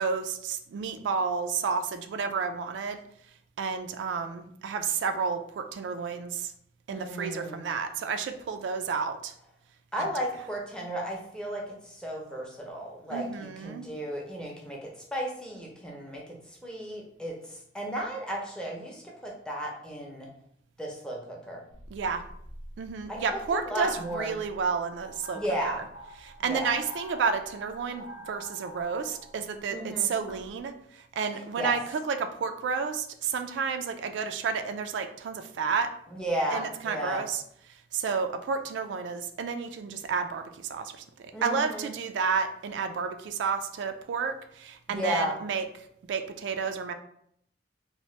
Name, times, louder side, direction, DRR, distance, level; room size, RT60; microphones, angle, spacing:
voice 1, 0.0-3.0 3.6-6.5 6.9-9.3 13.1-13.9 21.9-22.2 22.8-25.7 26.2-35.9 36.5-37.4 37.9-45.6 46.1-46.9, right 5 dB, 85° right, 8 dB, 0.3 m, -31 dB
voice 2, 6.9-7.6 9.9-20.3 20.8-21.6 23.1-24.3 25.3-25.8 26.4-26.7 29.7-30.1 31.3-31.7 36.1-37.2 41.3-41.9 44.9-45.3, equal, 5° left, -2 dB, 0.5 m, -34 dB
sound 1, 21.7-30.6, equal, 75° left, 0.5 m, -47 dB
2.8 x 2.1 x 3.1 m, 0.70 s
head